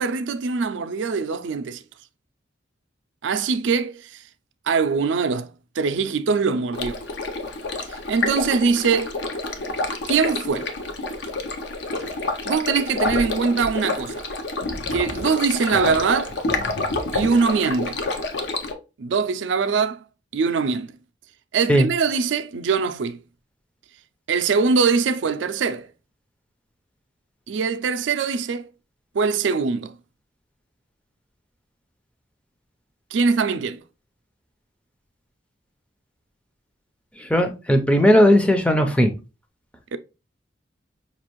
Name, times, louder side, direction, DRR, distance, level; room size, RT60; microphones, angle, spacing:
voice 1, 0.0-1.8 3.2-4.1 4.7-5.5 5.8-7.0 8.1-9.1 10.1-10.7 12.4-14.3 14.9-16.3 17.1-18.0 19.0-20.0 20.3-20.9 21.5-23.2 24.3-25.9 27.5-28.7 29.1-29.9 33.1-33.8 39.9-40.0, right 5 dB, 80° right, 0.4 m, -22 dB
Stream, 6.7-18.7, left 2 dB, 65° left, 0.6 m, -28 dB
voice 2, 37.3-39.1, equal, 5° left, 0.5 m, -16 dB
5.3 x 2.4 x 2.9 m
head